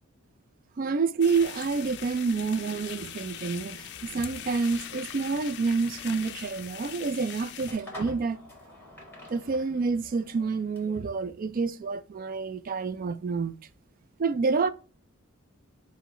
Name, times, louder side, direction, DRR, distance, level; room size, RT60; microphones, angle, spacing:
voice 1, 0.8-8.4 9.3-13.5 14.2-14.7, right 4 dB, 40° right, 0.3 m, -28 dB
sound 1, 1.2-7.7, left 10 dB, 55° left, 0.4 m, -41 dB
sound 2, 4.3-11.1, left 1 dB, 10° left, 1.6 m, -50 dB
5.9 x 2.1 x 4.1 m
head